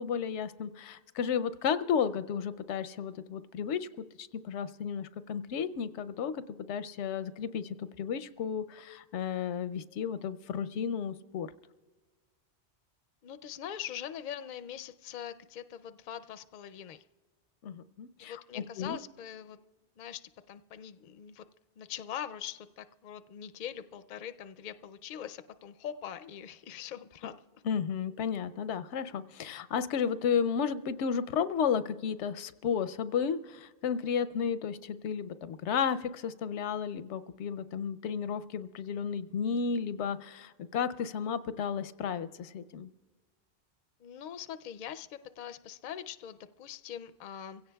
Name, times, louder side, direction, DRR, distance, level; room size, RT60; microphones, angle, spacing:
voice 1, 0.0-3.9 4.2-6.4 6.7-11.5 17.6-19.0 27.6-42.9, left 7 dB, 90° left, 14 dB, 0.9 m, -33 dB
voice 2, 13.2-17.0 18.2-19.6 20.0-20.2 20.5-21.4 21.8-27.3 44.0-47.6, left 9 dB, 55° left, 11 dB, 0.5 m, -42 dB
24.0 x 16.5 x 2.3 m, 1.4 s
omnidirectional pair, 1.1 m